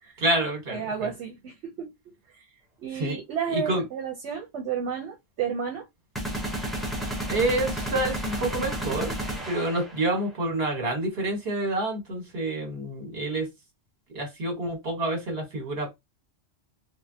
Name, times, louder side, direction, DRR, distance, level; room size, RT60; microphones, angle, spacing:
voice 1, 0.2-1.1 2.9-3.2 3.5-3.8 7.3-9.1 9.5-13.5 14.1-15.9, right 2 dB, 60° right, 1.5 m, -28 dB
voice 2, 0.7-1.9 2.3-2.5 2.8-5.9, right 7 dB, 80° right, 1.0 m, -32 dB
sound 1, 6.2-10.1, equal, ahead, 0.6 m, -32 dB
3.5 x 2.0 x 2.7 m
omnidirectional pair, 1.2 m